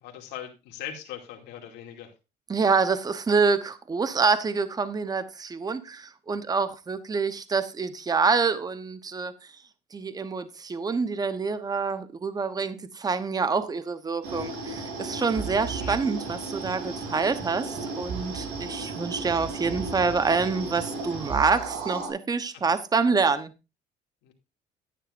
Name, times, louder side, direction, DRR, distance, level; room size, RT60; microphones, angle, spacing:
voice 1, 0.0-2.1 15.8-16.0 24.2-24.3, left 10 dB, 90° left, 2.6 m, -40 dB
voice 2, 2.5-9.3 9.9-23.5, right 4 dB, 20° right, 1.0 m, -26 dB
sound 1, 14.2-22.1, right 3 dB, 90° right, 5.8 m, -34 dB
12.0 x 10.0 x 2.6 m
cardioid pair, 110°, 17 cm